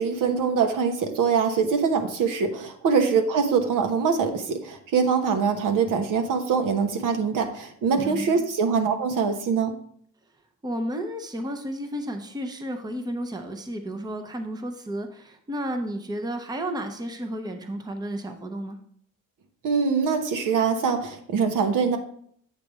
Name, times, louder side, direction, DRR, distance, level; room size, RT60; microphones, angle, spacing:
voice 1, 0.0-9.7 19.6-22.0, right 6 dB, 70° right, 6 dB, 1.1 m, -23 dB
voice 2, 2.8-3.2 7.9-8.4 10.6-18.8, equal, 10° right, 6 dB, 0.7 m, -32 dB
8.0 x 3.4 x 6.1 m, 0.64 s
cardioid pair, 120°, 33 cm